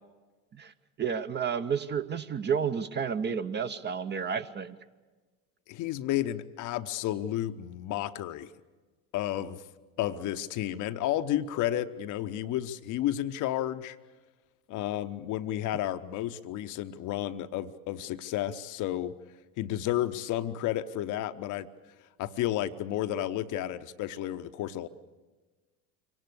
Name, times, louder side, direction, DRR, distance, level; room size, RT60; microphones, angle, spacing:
voice 1, 1.0-4.8, right 7 dB, 20° right, 11 dB, 0.7 m, -31 dB
voice 2, 5.7-8.5 9.1-9.6 10.0-14.0 14.7-19.2 19.6-21.7 22.2-24.9, left 12 dB, 40° left, 11 dB, 0.9 m, -32 dB
25.0 x 18.0 x 8.1 m, 1.3 s
figure-of-eight pair, 70°, 47 cm